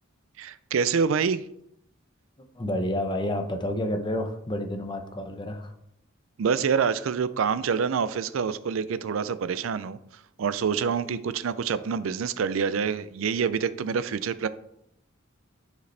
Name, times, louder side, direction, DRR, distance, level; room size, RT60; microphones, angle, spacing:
voice 1, 0.4-1.4 6.4-10.0 10.4-14.5, right 6 dB, 75° right, 0.4 m, -26 dB
voice 2, 2.6-5.7, left 1 dB, 25° left, 0.8 m, -29 dB
9.3 x 5.0 x 3.3 m
head